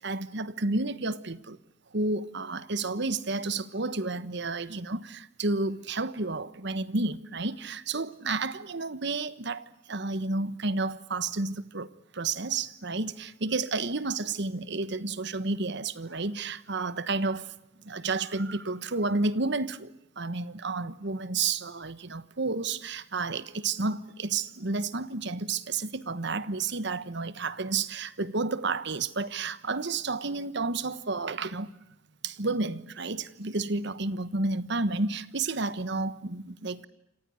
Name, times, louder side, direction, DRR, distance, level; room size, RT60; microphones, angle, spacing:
voice 1, 0.0-1.6 1.9-17.5 17.8-31.7 32.2-36.9, right 3 dB, 60° right, 1.3 m, -31 dB
29.5 x 27.0 x 6.4 m
head